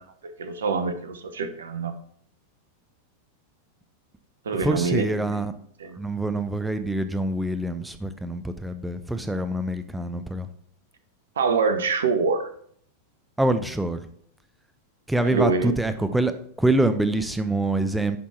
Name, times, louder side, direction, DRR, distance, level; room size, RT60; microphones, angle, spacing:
voice 1, 0.2-1.9 4.4-5.4 5.8-6.0 11.4-12.5 15.2-15.7 16.0-16.1, right 5 dB, 65° right, 10 dB, 0.9 m, -25 dB
voice 2, 4.6-5.5 6.0-10.5 13.4-14.1 15.1-18.2, right 1 dB, 5° right, 10 dB, 0.6 m, -25 dB
10.0 x 3.7 x 4.4 m, 0.63 s
figure-of-eight pair, 90°, 0 cm